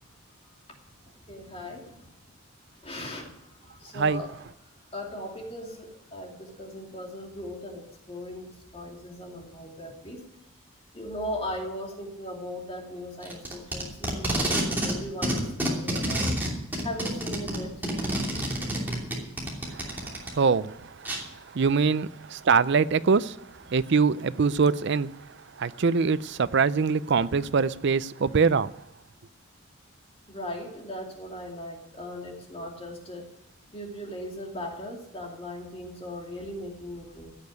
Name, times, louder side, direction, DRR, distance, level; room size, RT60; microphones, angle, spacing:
voice 1, 1.3-2.1 2.8-3.3 3.6-4.3 4.9-10.2 10.9-16.4 16.8-17.8 21.4-21.5 30.3-33.3 33.7-37.3, left 1 dB, 25° left, 2.7 m, -38 dB
Packing tape duct tape, 13.2-15.0 15.2-20.3 21.1-21.2, right 1 dB, 10° right, 2.9 m, -28 dB
voice 2, 19.7-21.1 21.5-23.4 23.7-25.1 25.6-28.7, right 5 dB, 55° right, 0.5 m, -24 dB
16.0 x 6.9 x 9.4 m
head